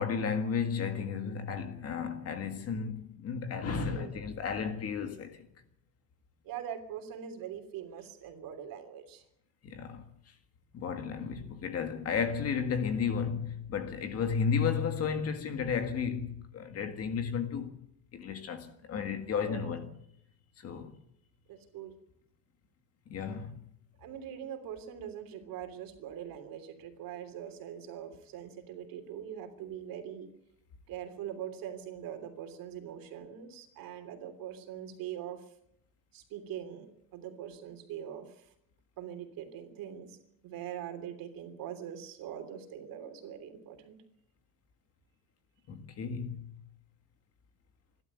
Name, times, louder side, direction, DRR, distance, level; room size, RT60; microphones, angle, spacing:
voice 1, 0.0-5.5 9.6-10.0 10.7-17.8 18.1-19.9 20.6-21.0 23.1-23.5 45.7-46.4, left 6 dB, 35° left, 1.8 m, -33 dB
voice 2, 3.6-4.3 6.4-9.2 19.3-19.8 21.5-21.9 24.0-30.3 30.9-35.4 36.1-38.4 39.0-40.2 40.4-44.0, right 9 dB, 50° right, 3.2 m, -42 dB
27.5 x 12.0 x 8.2 m
cardioid pair, 165°, 44 cm